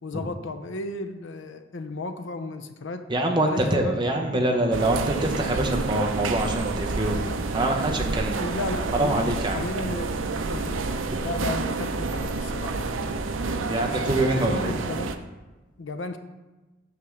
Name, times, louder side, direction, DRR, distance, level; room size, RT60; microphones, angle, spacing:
voice 1, 0.0-3.1 3.4-4.4 8.4-9.2 9.5-13.3 13.9-15.2 15.8-16.2, left 2 dB, 70° left, 9 dB, 0.6 m, -34 dB
voice 2, 3.1-7.2 7.5-8.4 8.9-9.6 13.6-14.7, right 1 dB, 25° right, 2 dB, 0.8 m, -25 dB
sound 1, 4.7-15.2, right 3 dB, 90° right, 0.6 m, -29 dB
8.3 x 3.5 x 6.4 m, 1.1 s
head